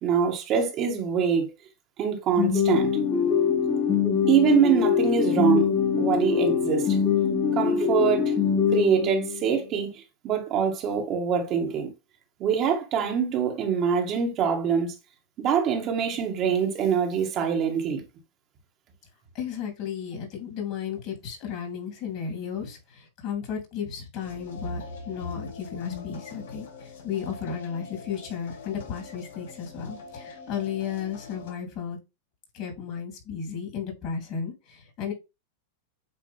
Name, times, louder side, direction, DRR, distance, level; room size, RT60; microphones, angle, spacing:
voice 1, 0.0-1.5 2.0-3.0 4.3-5.7 6.0-7.0 7.5-8.3 8.7-11.9 12.4-14.9 15.4-18.0, right 7 dB, 40° right, 2.1 m, -24 dB
sound 1, 2.4-9.5, left 7 dB, 25° left, 1.8 m, -23 dB
voice 2, 19.3-32.0 32.5-35.1, left 7 dB, 40° left, 3.4 m, -34 dB
sound 2, 24.2-31.5, left 3 dB, 75° left, 2.7 m, -42 dB
8.5 x 3.3 x 3.6 m
hypercardioid pair, 120°, 0 cm